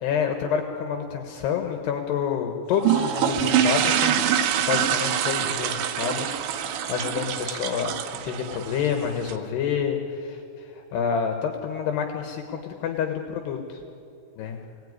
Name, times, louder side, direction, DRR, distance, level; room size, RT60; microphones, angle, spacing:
voice 1, 0.0-4.2 4.7-6.3 6.7-8.0 8.2-13.8 14.4-14.6, left 7 dB, 75° left, 4 dB, 3.4 m, -28 dB
sound 1, 2.8-9.4, right 9 dB, 90° right, 3.3 m, -25 dB
29.0 x 18.5 x 9.7 m, 2.6 s
omnidirectional pair, 5.0 m